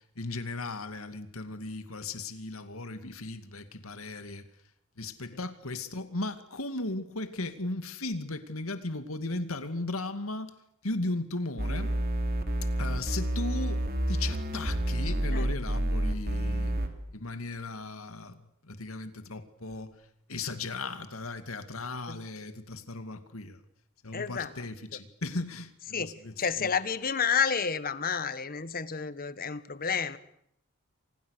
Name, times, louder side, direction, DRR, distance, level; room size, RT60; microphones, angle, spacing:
voice 1, 0.0-4.4 5.0-10.5 10.8-11.9 12.8-16.7 17.1-19.9 20.3-23.6 24.0-26.3 26.6-26.7, left 2 dB, 75° left, 2.4 m, -36 dB
sound 1, 11.6-16.9, right 1 dB, 45° right, 3.1 m, -29 dB
voice 2, 24.1-24.7 25.9-30.2, left 6 dB, 45° left, 1.4 m, -30 dB
29.5 x 25.0 x 6.7 m
head